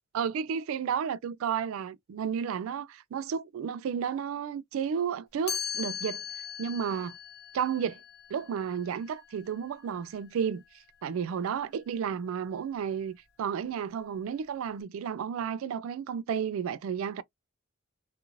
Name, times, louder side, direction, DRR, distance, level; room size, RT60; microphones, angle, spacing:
voice 1, 0.1-6.2 6.6-7.2 7.5-8.0 8.3-10.6 11.0-17.2, right 7 dB, 80° right, 0.3 m, -32 dB
Chime, 5.5-11.3, left 7 dB, 50° left, 0.6 m, -40 dB
3.0 x 2.4 x 2.5 m
head